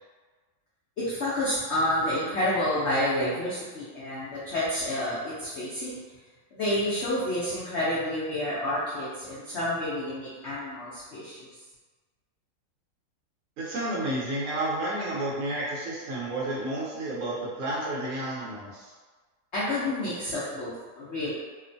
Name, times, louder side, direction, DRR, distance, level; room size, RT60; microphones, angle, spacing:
voice 1, 1.0-6.0 6.5-11.4 19.5-21.3, left 1 dB, 90° left, -9 dB, 0.6 m, -29 dB
voice 2, 13.6-18.9, right 1 dB, 60° right, -5 dB, 1.0 m, -31 dB
2.9 x 2.1 x 2.6 m, 1.4 s
omnidirectional pair, 1.9 m